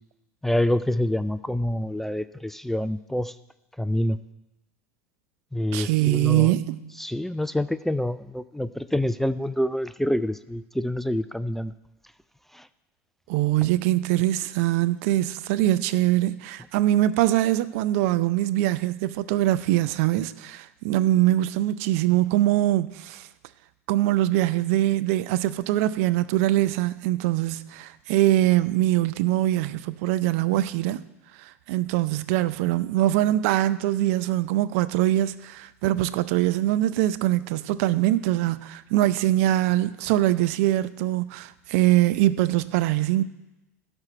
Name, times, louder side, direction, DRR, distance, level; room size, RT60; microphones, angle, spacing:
voice 1, 0.4-3.3 3.8-4.2 5.5-6.5 7.0-11.7 12.5-12.7, left 1 dB, 5° left, 0.4 m, -26 dB
voice 2, 5.7-7.0 13.3-23.3 23.9-31.0 31.4-43.2, right 14 dB, 60° right, 0.5 m, -23 dB
12.5 x 4.5 x 8.4 m
hypercardioid pair, 80°, 8 cm